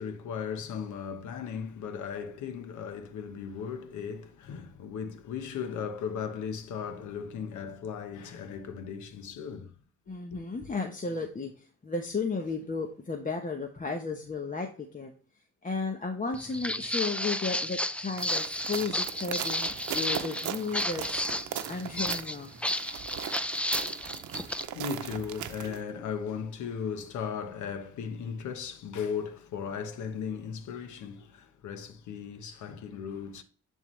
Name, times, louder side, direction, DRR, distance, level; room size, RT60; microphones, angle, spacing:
voice 1, 0.0-9.7 10.3-10.4 24.3-33.4, left 7 dB, 75° left, 1.2 m, -37 dB
voice 2, 10.1-15.1 15.6-22.5, left 4 dB, 25° left, 1.0 m, -34 dB
Walk footsteps, 16.3-24.7, left 1 dB, 5° left, 0.4 m, -32 dB
sound 1, 18.2-25.8, right 10 dB, 75° right, 0.8 m, -39 dB
10.5 x 3.6 x 3.2 m
cardioid pair, 90°, 30 cm